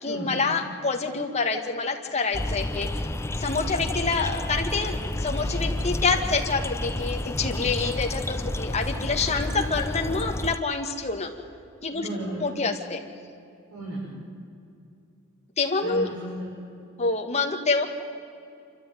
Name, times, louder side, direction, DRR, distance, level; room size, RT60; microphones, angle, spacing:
voice 1, 0.0-3.0 3.4-4.9 5.2-11.3 11.8-12.1 12.4-13.0 15.6-16.1 17.0-17.9, left 4 dB, 30° left, 3 dB, 1.9 m, -27 dB
sound 1, 2.3-10.6, left 1 dB, 10° left, 0.5 m, -30 dB
voice 2, 11.9-12.5 13.7-14.0 15.8-16.5, right 1 dB, 90° right, -7 dB, 6.4 m, -34 dB
27.5 x 13.5 x 9.4 m, 2.5 s
head